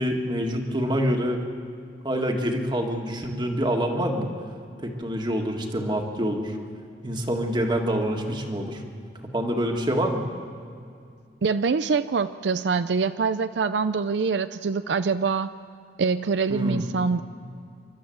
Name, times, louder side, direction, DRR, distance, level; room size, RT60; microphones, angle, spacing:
voice 1, 0.0-1.4 2.0-4.3 4.8-6.6 7.0-8.8 9.3-10.2 16.5-16.9, equal, 25° right, 2 dB, 1.8 m, -26 dB
voice 2, 11.4-15.5 16.0-17.2, right 5 dB, 80° right, 12 dB, 0.5 m, -24 dB
29.0 x 12.5 x 7.8 m, 2.3 s
head